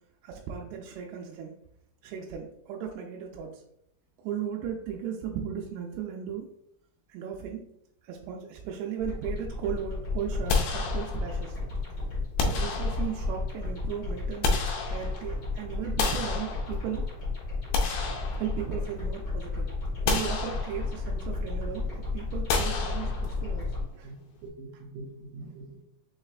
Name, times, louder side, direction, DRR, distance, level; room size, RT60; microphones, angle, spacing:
voice 1, 0.2-1.6 2.0-3.6 4.2-6.5 7.1-7.7 8.0-11.6 12.4-14.5 14.9-17.0 18.4-19.7 20.0-23.8, right 8 dB, 90° right, 0 dB, 2.5 m, -36 dB
sound 1, 9.0-23.8, left 3 dB, 55° left, 1.2 m, -33 dB
sound 2, 10.5-11.5 12.4-13.4 14.1-15.4 16.0-17.1 17.5-19.0 19.4-19.5 20.1-21.1 22.5-23.6, left 4 dB, 90° left, 1.8 m, -31 dB
voice 2, 24.0-25.8, right 2 dB, 75° right, 0 dB, 2.1 m, -44 dB
6.4 x 3.1 x 2.4 m, 0.75 s
omnidirectional pair, 4.4 m